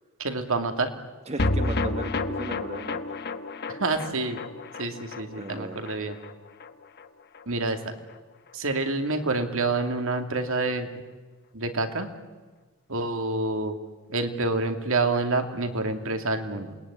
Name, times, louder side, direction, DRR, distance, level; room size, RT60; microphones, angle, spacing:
voice 1, 0.2-0.9 3.7-4.4 4.8-6.2 7.5-7.8 8.5-10.9 11.5-12.1 12.9-13.8 14.1-16.8, right 3 dB, 65° right, 6 dB, 2.5 m, -27 dB
voice 2, 1.3-3.0 5.4-5.8, right 2 dB, 30° right, 7 dB, 1.4 m, -36 dB
sound 1, 1.4-7.8 8.1-8.2 8.5-8.6, left 2 dB, 50° left, 1.2 m, -31 dB
28.0 x 20.5 x 9.8 m, 1.3 s
head